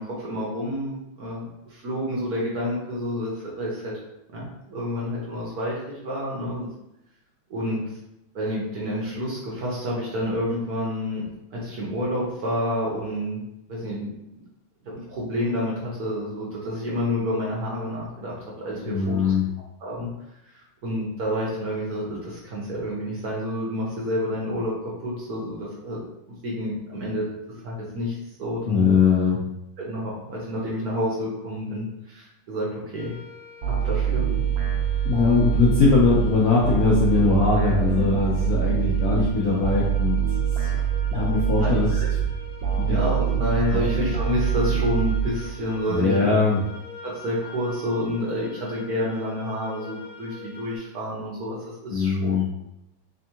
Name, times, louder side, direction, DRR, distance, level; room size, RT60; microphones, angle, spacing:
voice 1, 0.0-3.9 4.3-6.7 7.5-7.8 8.3-13.4 13.7-14.1 14.8-18.3 18.6-19.3 19.8-20.1 20.4-26.0 26.3-27.2 27.6-28.9 29.8-33.1 33.7-34.2 41.6-42.1 42.9-46.3 47.0-52.4, left 1 dB, 60° right, -5 dB, 1.1 m, -29 dB
voice 2, 18.9-19.4 28.7-29.4 35.0-40.2 40.6-40.7 41.1-41.9 42.7-43.0 43.7-43.8 45.9-46.6 51.9-52.5, left 4 dB, 70° left, -5 dB, 0.9 m, -21 dB
sound 1, 32.9-50.8, left 5 dB, 45° left, 0.4 m, -44 dB
sound 2, 33.6-45.8, right 8 dB, 85° right, 0.8 m, -25 dB
3.5 x 3.3 x 2.8 m, 0.87 s
omnidirectional pair, 2.3 m